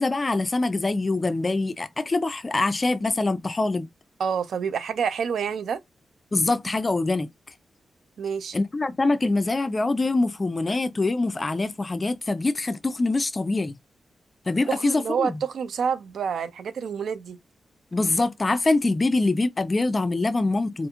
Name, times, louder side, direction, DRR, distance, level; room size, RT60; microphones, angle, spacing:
voice 1, 0.0-3.9 6.3-7.3 8.5-13.7 14.5-15.4 17.9-20.9, left 2 dB, 25° left, 0.3 m, -24 dB
voice 2, 4.2-5.8 8.2-8.6 14.7-17.4, right 6 dB, 80° right, 0.3 m, -28 dB
2.4 x 2.3 x 2.9 m
wide cardioid pair, 130°, 0 cm